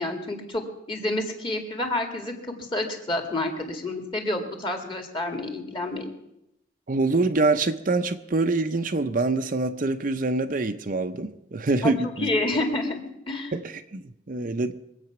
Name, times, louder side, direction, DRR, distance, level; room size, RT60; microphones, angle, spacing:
voice 1, 0.0-6.1 11.8-11.9 12.2-13.0 13.3-13.5, left 1 dB, 25° left, 4 dB, 2.1 m, -29 dB
voice 2, 6.9-12.3 13.5-14.8, right 3 dB, 45° right, 8 dB, 0.6 m, -25 dB
23.0 x 8.3 x 6.0 m, 0.84 s
head